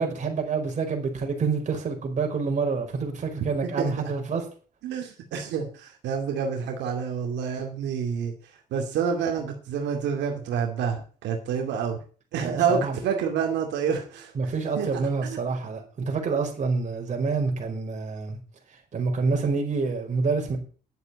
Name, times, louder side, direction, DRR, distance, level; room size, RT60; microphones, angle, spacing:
voice 1, 0.0-4.4 12.4-13.0 14.3-18.4 18.9-20.6, right 4 dB, 45° right, 4.9 m, -27 dB
voice 2, 3.6-4.0 4.8-12.0 12.3-15.4, right 6 dB, 90° right, 2.5 m, -28 dB
11.0 x 8.2 x 8.3 m
cardioid pair, 120°, 18 cm